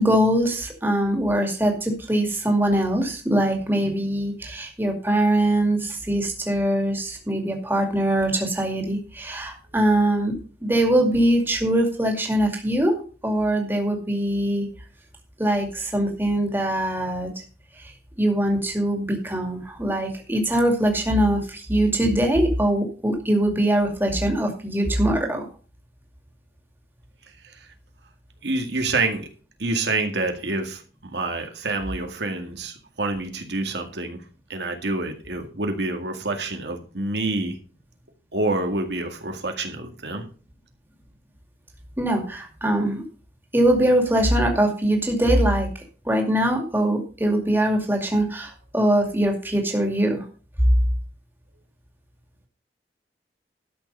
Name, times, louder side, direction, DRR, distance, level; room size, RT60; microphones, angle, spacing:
voice 1, 0.0-12.9 13.2-14.7 15.4-17.3 17.8-17.9 18.2-25.4 42.0-43.0 43.5-45.7 46.0-50.3, right 1 dB, 10° right, 2 dB, 2.3 m, -22 dB
voice 2, 28.4-29.3 29.6-30.8 31.1-34.2 34.5-37.6 38.3-40.2, right 2 dB, 80° right, 4 dB, 2.0 m, -27 dB
12.5 x 6.8 x 5.4 m, 0.38 s
head